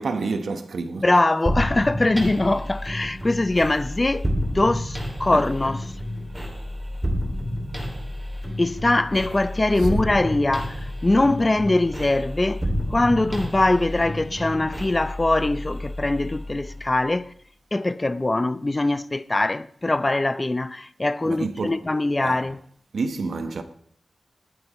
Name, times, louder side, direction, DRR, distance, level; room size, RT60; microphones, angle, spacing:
voice 1, 0.0-1.0 5.3-5.5 9.8-10.0 21.2-21.9 22.2-22.4 22.9-23.6, right 4 dB, 80° right, 1.2 m, -29 dB
voice 2, 1.0-5.8 8.6-12.6 12.9-17.3 17.7-22.6, left 2 dB, 25° left, 0.6 m, -22 dB
sound 1, 1.5-17.1, equal, 10° right, 2.6 m, -30 dB
20.0 x 9.4 x 3.1 m
wide cardioid pair, 130°, 0 cm